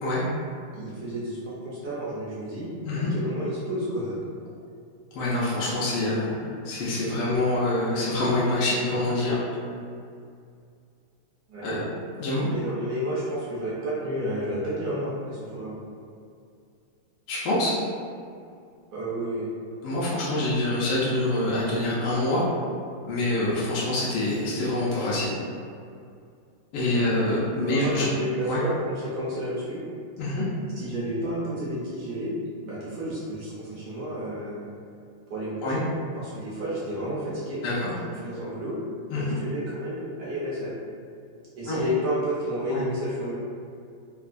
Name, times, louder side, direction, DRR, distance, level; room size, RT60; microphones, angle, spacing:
voice 1, 0.7-2.7 3.0-4.1 11.5-11.7 12.5-15.8 18.9-19.5 26.9-27.1 27.7-29.8 30.7-32.3 32.6-34.6 35.3-37.6 38.2-38.8 39.1-40.8 41.6-43.3, equal, 70° right, -8 dB, 0.9 m, -31 dB
voice 2, 5.1-9.4 11.6-11.8 12.2-12.5 17.3-17.8 19.8-22.4 23.1-25.3 26.7-28.1 28.5-28.6 30.2-30.4 35.6-35.8 37.6-37.9 39.1-39.3 41.7-41.8 42.7-42.8, left 2 dB, 80° left, -8 dB, 1.5 m, -26 dB
3.9 x 2.2 x 2.4 m, 2.4 s
omnidirectional pair, 2.4 m